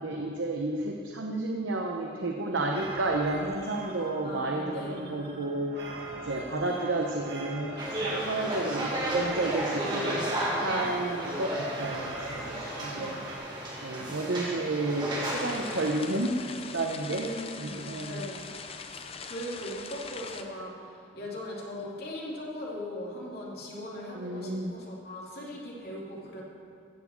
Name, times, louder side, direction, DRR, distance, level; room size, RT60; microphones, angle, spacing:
voice 1, 0.0-5.8 6.2-10.2 10.6-13.2 13.8-16.4 16.7-17.3 17.6-18.3 24.1-24.7, right 2 dB, 85° right, 1 dB, 0.9 m, -31 dB
sound 1, 2.6-13.4, right 2 dB, 60° right, 2.2 m, -43 dB
voice 2, 4.2-5.2 12.8-13.2 17.1-18.5 18.9-20.7 21.1-26.4, left 1 dB, 55° left, -4 dB, 2.7 m, -39 dB
sound 2, 7.8-15.9, right 1 dB, 25° right, 2.1 m, -33 dB
sound 3, 15.2-20.4, left 5 dB, 30° left, 0.6 m, -42 dB
14.5 x 6.1 x 7.5 m, 2.4 s
head